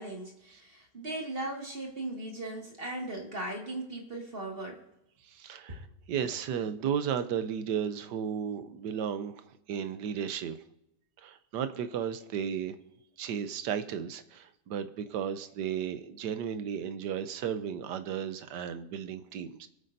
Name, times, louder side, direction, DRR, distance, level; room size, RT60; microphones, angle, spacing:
voice 1, 0.0-4.8 5.7-5.9 7.2-7.3, right 2 dB, 35° right, 0 dB, 2.3 m, -38 dB
voice 2, 5.2-10.6 11.2-12.8 13.2-19.7, right 8 dB, 90° right, 10 dB, 1.4 m, -34 dB
25.0 x 8.8 x 2.7 m, 0.85 s
omnidirectional pair, 1.8 m